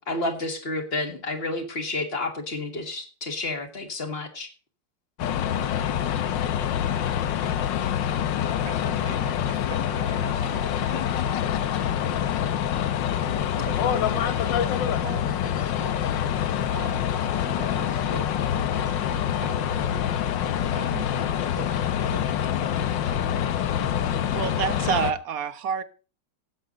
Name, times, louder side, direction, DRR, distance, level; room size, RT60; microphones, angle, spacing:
voice 1, 0.0-4.5, left 2 dB, 35° left, 7 dB, 2.0 m, -30 dB
sound 1, 5.2-25.1, left 9 dB, 80° left, 1.6 m, -26 dB
voice 2, 8.3-12.6 13.2-16.4 16.7-17.1 17.4-20.2 20.7-22.3, right 6 dB, 75° right, 6 dB, 2.4 m, -43 dB
voice 3, 24.3-25.8, right 7 dB, 55° right, 13 dB, 1.2 m, -27 dB
17.5 x 8.0 x 3.9 m, 0.36 s
omnidirectional pair, 2.0 m